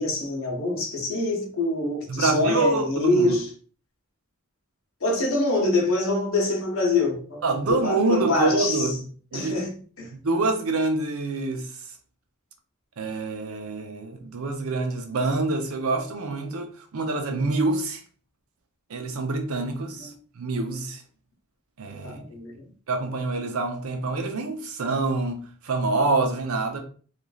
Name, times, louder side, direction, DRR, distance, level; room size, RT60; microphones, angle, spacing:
voice 1, 0.0-3.5 5.0-8.9 9.3-10.1 20.0-20.1 22.0-22.6, left 2 dB, 70° left, 0.9 m, -25 dB
voice 2, 2.1-3.4 7.4-9.7 10.1-11.7 13.0-18.0 18.9-21.0 21.8-22.2 22.9-26.8, right 3 dB, 80° right, 0.6 m, -26 dB
3.1 x 2.5 x 2.3 m
head